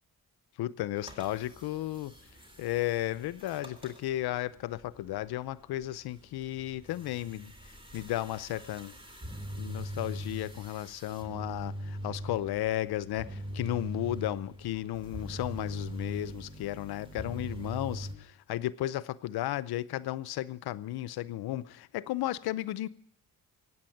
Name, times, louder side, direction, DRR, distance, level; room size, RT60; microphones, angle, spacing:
voice 1, 0.6-2.1 2.6-7.5 7.9-8.9 9.6-22.9, left 14 dB, 90° left, 0.7 m, -34 dB
sound 1, 1.0-18.1, equal, 15° right, 3.5 m, -42 dB
16.0 x 9.4 x 9.1 m
cardioid pair, 70°, 37 cm